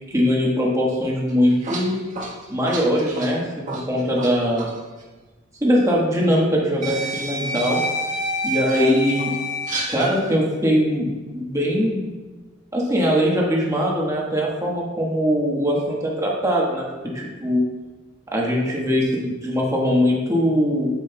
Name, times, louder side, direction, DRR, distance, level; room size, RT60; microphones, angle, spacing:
voice 1, 0.1-2.0 2.5-4.7 5.6-7.8 8.4-9.3 9.9-12.1 12.7-16.9 17.1-17.6 18.3-20.9, equal, 15° right, -3 dB, 1.3 m, -21 dB
sound 1, 1.3-4.3 4.6-4.8 5.9-6.0 6.8-10.1, right 1 dB, 40° right, 1.3 m, -28 dB
8.6 x 7.7 x 2.3 m, 1.2 s
head